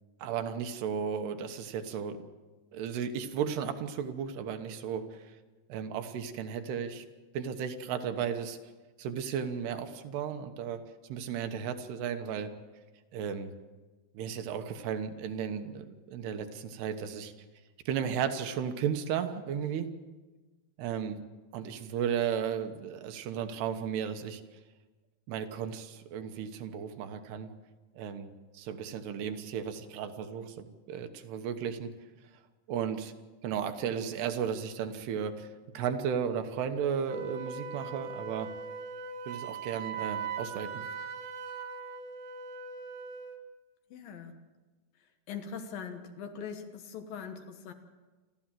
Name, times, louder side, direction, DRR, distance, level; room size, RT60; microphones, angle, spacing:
voice 1, 0.2-2.2 2.7-5.3 5.7-7.0 7.3-8.6 9.0-10.8 11.1-12.5 13.1-13.5 14.1-17.3 17.9-19.9 20.8-21.2 21.5-24.4 25.3-27.5 28.0-31.9 32.7-33.1 33.4-35.5 35.7-38.5 39.3-40.8, right 7 dB, 80° right, 8 dB, 3.2 m, -34 dB
Wind instrument woodwind instrument, 37.1-43.4, right 5 dB, 60° right, 2.4 m, -40 dB
voice 2, 43.9-44.4 45.3-47.7, left 6 dB, 65° left, 6 dB, 2.8 m, -41 dB
28.0 x 13.0 x 7.6 m, 1.3 s
omnidirectional pair, 4.7 m